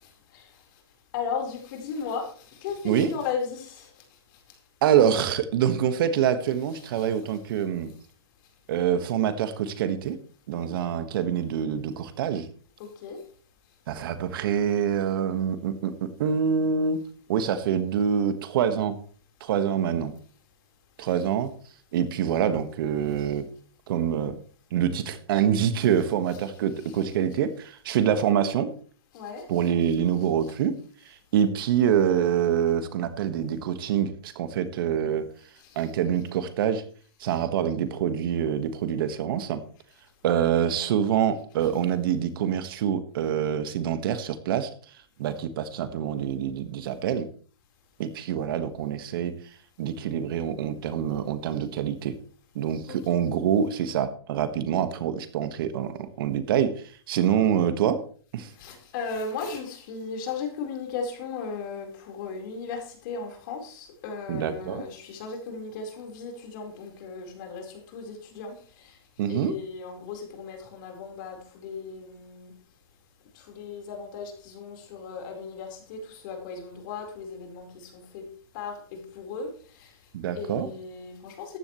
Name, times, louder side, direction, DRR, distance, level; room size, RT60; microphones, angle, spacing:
voice 1, 0.0-0.5 1.1-4.0 6.7-7.1 12.8-13.2 25.8-26.0 26.3-26.5 26.8-27.0 29.1-29.7 35.6-35.9 41.6-41.7 52.9-53.2 58.6-69.0 69.3-72.5 73.3-78.3 78.5-79.9 80.3-81.6, left 5 dB, 50° left, 2 dB, 4.4 m, -36 dB
voice 2, 2.8-3.2 4.8-7.9 8.7-10.2 10.5-12.5 13.9-17.0 17.3-19.0 19.4-20.1 21.0-21.5 21.9-23.5 23.9-24.4 24.7-28.7 29.5-30.8 31.0-35.3 35.7-36.8 37.2-39.6 40.2-44.7 45.2-47.3 48.0-49.3 49.8-52.2 52.5-58.0 58.3-58.5 64.3-64.8 69.2-69.6 80.1-80.7, right 8 dB, 60° right, 10 dB, 1.6 m, -25 dB
14.0 x 11.0 x 3.2 m, 0.43 s
hypercardioid pair, 135°, 13 cm